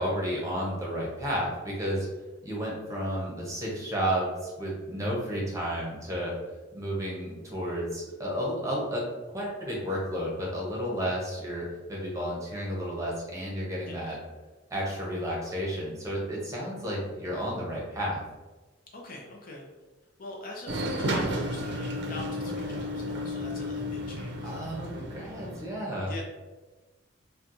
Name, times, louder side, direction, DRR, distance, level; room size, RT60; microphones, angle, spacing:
voice 1, 0.0-2.1 2.4-6.3 6.7-14.2 14.7-18.2 24.4-26.1, equal, 15° right, -4 dB, 0.8 m, -32 dB
voice 2, 13.8-14.2 18.9-19.7 20.2-24.5 26.1-26.2, left 2 dB, 45° left, -1 dB, 0.6 m, -43 dB
sound 1, 20.7-25.7, equal, 60° right, 0.6 m, -32 dB
4.3 x 2.3 x 2.6 m, 1.2 s
head